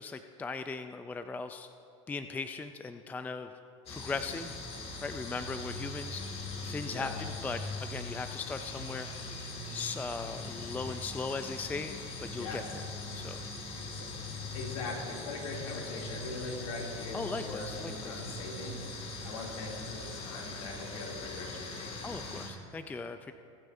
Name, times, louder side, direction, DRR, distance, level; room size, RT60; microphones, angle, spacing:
voice 1, 0.0-1.7 2.1-3.5 3.9-4.5 5.0-6.3 6.6-12.6 13.1-13.4 17.1-18.3 22.0-23.3, left 4 dB, 10° left, 9 dB, 0.4 m, -38 dB
sound 1, 3.9-22.5, left 3 dB, 35° left, 2.1 m, -41 dB
sound 2, 8.2-19.8, right 4 dB, 25° right, 2.2 m, -52 dB
voice 2, 12.3-12.7 13.8-14.1 14.5-18.8 19.2-21.9, left 3 dB, 80° left, -2 dB, 2.8 m, -41 dB
23.0 x 9.1 x 2.7 m, 2.5 s
hypercardioid pair, 105°, 17 cm